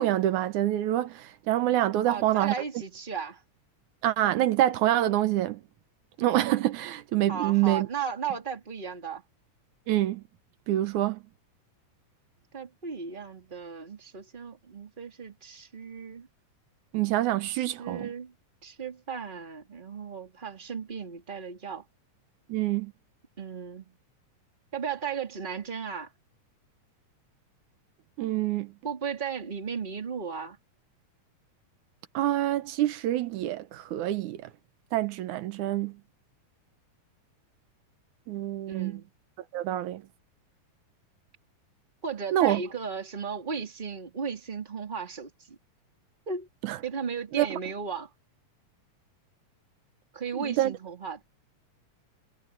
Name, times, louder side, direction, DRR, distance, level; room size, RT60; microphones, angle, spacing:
voice 1, 0.0-2.5 4.0-5.6 6.2-7.9 9.9-10.2 10.7-11.2 16.9-18.1 22.5-22.9 28.2-28.7 32.1-34.5 34.9-36.0 38.3-39.0 39.5-40.0 42.3-42.6 46.6-46.8 47.3-47.5 50.4-50.8, right 13 dB, 75° right, 2.2 m, -26 dB
voice 2, 2.1-3.4 7.3-9.2 12.5-16.3 17.5-18.3 18.6-21.8 23.4-23.9 24.7-26.1 28.8-30.6 38.7-39.1 42.0-45.6 46.3-46.5 46.8-48.1 50.1-51.2, right 6 dB, 15° right, 2.8 m, -35 dB
omnidirectional pair, 3.7 m